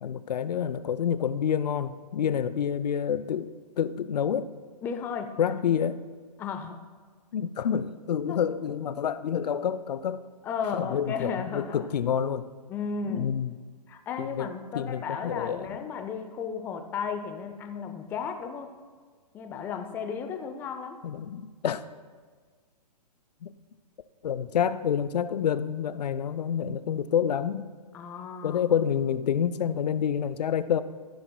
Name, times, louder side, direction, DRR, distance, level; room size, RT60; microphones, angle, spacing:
voice 1, 0.0-4.5 5.4-6.0 7.3-10.2 10.7-12.5 13.1-13.5 14.2-14.5 14.7-15.8 21.0-21.8 23.4-23.5 24.2-27.7 28.4-30.8, left 8 dB, 70° left, 14 dB, 0.5 m, -28 dB
voice 2, 4.8-5.4 6.4-6.8 8.3-8.4 10.4-11.9 12.7-13.3 13.9-18.7 19.3-21.0 27.9-28.6, left 6 dB, 10° left, 6 dB, 0.4 m, -34 dB
14.0 x 10.5 x 2.2 m, 1.5 s
hypercardioid pair, 140°, 21 cm